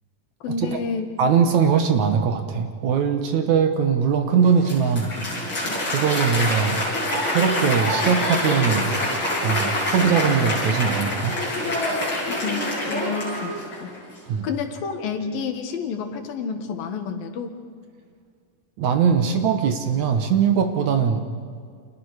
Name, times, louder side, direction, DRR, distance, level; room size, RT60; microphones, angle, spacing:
voice 1, 0.4-1.1 12.2-14.0 14.4-17.6, left 6 dB, 85° left, 6 dB, 3.4 m, -30 dB
voice 2, 1.2-5.1 5.9-6.8 7.2-8.9 9.4-11.4 14.3-14.5 18.8-21.3, right 7 dB, 65° right, 6 dB, 2.4 m, -21 dB
Applause, 4.4-14.0, left 1 dB, 35° left, 7.6 m, -26 dB
29.5 x 26.5 x 4.9 m, 2.1 s
omnidirectional pair, 4.0 m